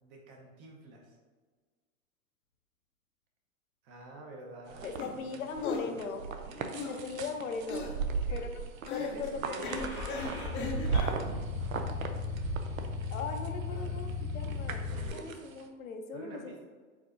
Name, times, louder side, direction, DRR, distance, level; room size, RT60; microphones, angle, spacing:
voice 1, 0.0-1.2 3.8-5.7 5.9-6.0 6.4-7.0 8.1-8.4 9.0-11.3 13.7-14.0 14.8-15.2 16.1-16.7, right 1 dB, 35° right, 1 dB, 1.0 m, -49 dB
sound 1, 4.7-15.6, right 5 dB, 75° right, 0.6 m, -37 dB
voice 2, 4.8-6.2 6.9-7.9 8.3-8.5 8.9-9.8 13.1-14.8 15.1-16.5, left 4 dB, 75° left, 5 dB, 0.7 m, -39 dB
sound 2, 5.0-5.1 5.6-5.9 6.7-7.0 7.7-8.0 8.8-9.2 9.6-11.1, left 3 dB, 25° left, 0.7 m, -37 dB
Car / Engine starting, 9.7-15.1, left 4 dB, 10° right, 1.1 m, -36 dB
4.7 x 4.1 x 2.6 m, 1.5 s
hypercardioid pair, 105°, 41 cm